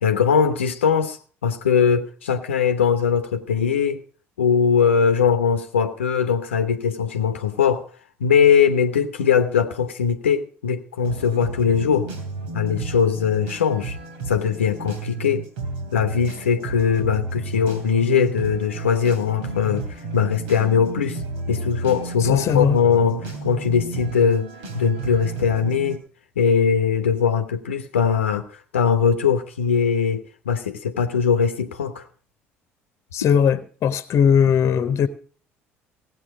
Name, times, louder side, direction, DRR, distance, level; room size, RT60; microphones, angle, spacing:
voice 1, 0.0-4.0 4.4-7.8 8.2-12.1 12.5-14.0 14.3-15.4 15.9-19.8 20.1-21.2 21.5-24.5 24.7-26.0 26.4-32.0, left 7 dB, 75° left, 0.9 m, -20 dB
sound 1, 11.0-26.0, right 3 dB, 70° right, 3.2 m, -32 dB
voice 2, 22.2-22.8 33.1-35.1, left 7 dB, 45° left, 1.2 m, -19 dB
17.5 x 8.3 x 5.1 m
figure-of-eight pair, 55°, 7 cm